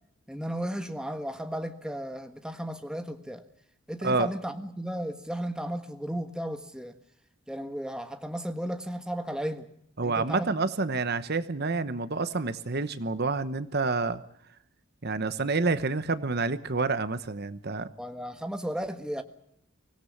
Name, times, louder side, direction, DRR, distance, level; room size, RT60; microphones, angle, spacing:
voice 1, 0.3-3.4 3.9-6.9 7.5-9.7 10.0-10.7 18.0-19.2, equal, 5° right, 1.4 m, -34 dB
voice 2, 10.0-14.2 15.0-17.9, right 3 dB, 50° right, 1.0 m, -28 dB
24.5 x 17.0 x 7.2 m
head